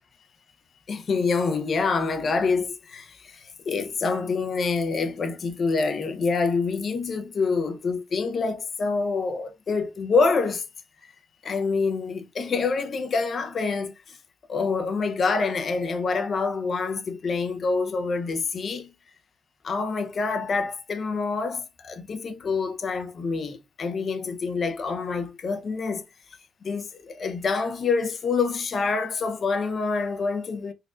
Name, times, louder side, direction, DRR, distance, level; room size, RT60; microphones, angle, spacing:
voice 1, 0.9-10.6 11.4-14.2 14.5-18.9 19.6-26.0 26.6-30.7, left 4 dB, 45° left, 0.7 m, -26 dB
4.0 x 2.6 x 2.4 m
hypercardioid pair, 55°, 0 cm